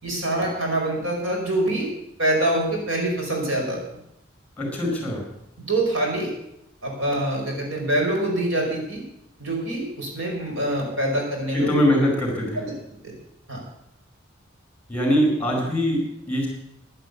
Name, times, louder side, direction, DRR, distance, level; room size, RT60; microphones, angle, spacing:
voice 1, 0.0-1.9 2.2-3.8 5.6-6.3 6.8-9.0 9.4-11.7 12.5-12.7 13.0-13.1 13.5-13.6, right 1 dB, 85° right, 0 dB, 5.1 m, -25 dB
voice 2, 4.6-5.2 11.5-12.7 14.9-16.5, equal, 10° left, 1 dB, 4.6 m, -22 dB
11.0 x 10.5 x 8.1 m, 0.81 s
head